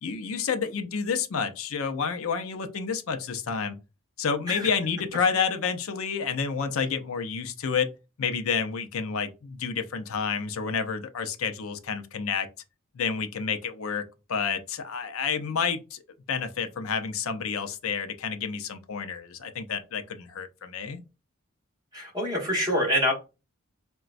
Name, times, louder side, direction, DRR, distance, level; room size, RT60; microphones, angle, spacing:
voice 1, 0.0-3.8 4.2-7.9 8.2-12.5 12.9-16.0 16.3-21.0, left 6 dB, 80° left, 0.5 m, -29 dB
voice 2, 21.9-23.1, equal, 20° right, 1.2 m, -25 dB
3.9 x 2.2 x 2.4 m
head